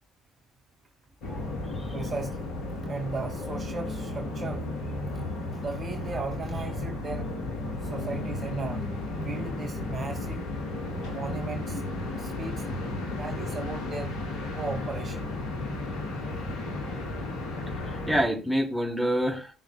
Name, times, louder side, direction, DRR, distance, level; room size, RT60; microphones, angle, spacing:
sound 1, 1.2-18.2, left 2 dB, 60° left, 3.4 m, -34 dB
voice 1, 1.9-2.5 2.9-4.6 5.5-7.3 7.8-8.8 9.1-10.4 11.1-11.8 12.2-12.7 13.1-14.1 14.5-15.2 17.1-17.6, right 3 dB, 35° right, 2.1 m, -36 dB
voice 2, 17.8-19.5, equal, 5° left, 3.3 m, -27 dB
18.5 x 6.4 x 2.3 m
hypercardioid pair, 60°, 0 cm